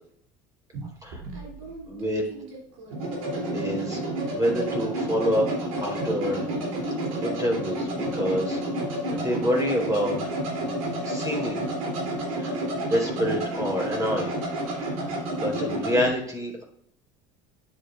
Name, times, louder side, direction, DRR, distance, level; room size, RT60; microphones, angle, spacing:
sound 1, 0.7-16.1, right 1 dB, 90° right, 3.1 m, -30 dB
voice 1, 1.9-2.2 3.5-6.4 7.2-10.2 11.0-11.7 12.3-12.6 12.8-14.4 14.7-16.6, equal, 20° right, 0 dB, 3.8 m, -27 dB
11.5 x 7.3 x 2.5 m, 0.67 s
supercardioid pair, 95°, 17 cm